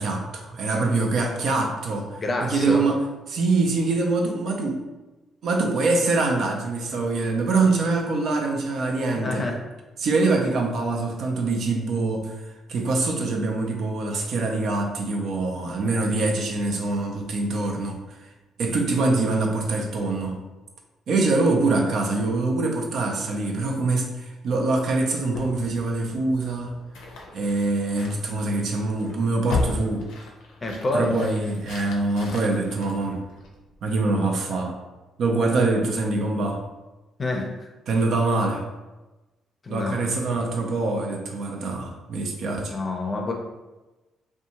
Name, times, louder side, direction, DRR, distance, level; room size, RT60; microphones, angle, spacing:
voice 1, 0.0-2.1 2.4-3.0 3.3-4.8 5.4-9.5 10.0-12.4 12.7-18.2 18.6-20.4 21.1-26.7 27.3-30.1 30.9-33.2 33.8-34.8 35.2-36.6 37.9-38.6 39.7-42.7, right 3 dB, 70° right, 1 dB, 0.5 m, -24 dB
voice 2, 2.2-2.8 9.2-9.6 30.6-31.2 37.2-37.7 39.6-40.4 42.5-43.3, left 2 dB, 35° left, 1 dB, 0.5 m, -28 dB
sound 1, 25.3-33.8, left 3 dB, 85° left, 0.5 m, -35 dB
2.6 x 2.2 x 2.8 m, 1.1 s
cardioid pair, 90°, 0 cm